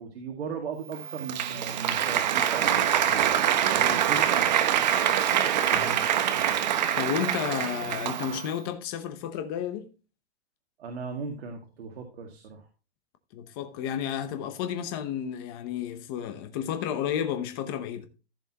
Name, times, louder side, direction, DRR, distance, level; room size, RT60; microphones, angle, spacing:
voice 1, 0.0-3.3 3.7-4.7 10.8-12.7, right 5 dB, 70° right, 2.3 m, -38 dB
Applause, 0.9-8.5, right 10 dB, 40° right, 0.9 m, -25 dB
voice 2, 5.7-6.1 7.0-9.9 13.3-18.1, left 9 dB, 20° left, 0.8 m, -32 dB
15.0 x 6.1 x 2.9 m
hypercardioid pair, 175°, 33 cm